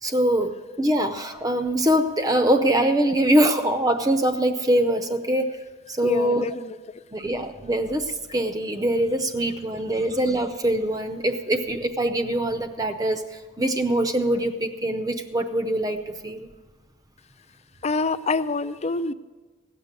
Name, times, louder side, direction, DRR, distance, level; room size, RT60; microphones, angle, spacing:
voice 1, 0.0-5.5 5.9-6.4 7.1-16.5, right 1 dB, 20° right, 8 dB, 0.6 m, -23 dB
voice 2, 6.0-6.8 17.8-19.1, left 3 dB, 30° left, 14 dB, 0.4 m, -26 dB
17.0 x 6.6 x 9.0 m, 1.3 s
head